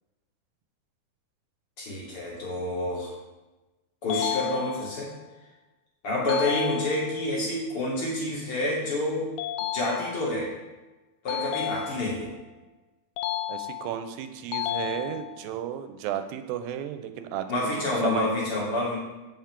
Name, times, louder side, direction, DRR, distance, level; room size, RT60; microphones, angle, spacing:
voice 1, 1.8-3.1 4.0-5.1 6.0-9.3 9.7-10.5 11.2-12.3 17.5-18.9, left 1 dB, 45° left, -5 dB, 2.6 m, -28 dB
sound 1, 4.1-5.1 6.3-7.3 9.4-10.4 11.3-12.3 13.2-14.1 14.5-15.5, left 12 dB, 80° left, 2.0 m, -32 dB
voice 2, 13.5-18.3, right 10 dB, 85° right, 9 dB, 2.4 m, -33 dB
9.1 x 5.7 x 3.6 m, 1.1 s
omnidirectional pair, 4.1 m